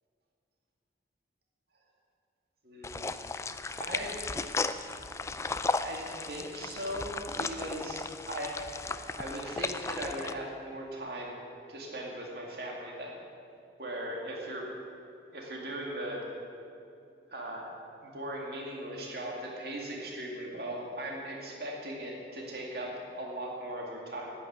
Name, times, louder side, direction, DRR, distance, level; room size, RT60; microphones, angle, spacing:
voice 1, 2.6-3.2 3.8-4.6 5.8-8.7 9.2-11.4 11.7-13.2 13.8-14.7 15.3-16.2 17.3-17.7 18.0-24.3, right 1 dB, 60° right, -1 dB, 2.3 m, -39 dB
sound 1, 2.8-10.3, left 3 dB, 15° left, 0.3 m, -35 dB
11.0 x 9.1 x 9.5 m, 2.6 s
head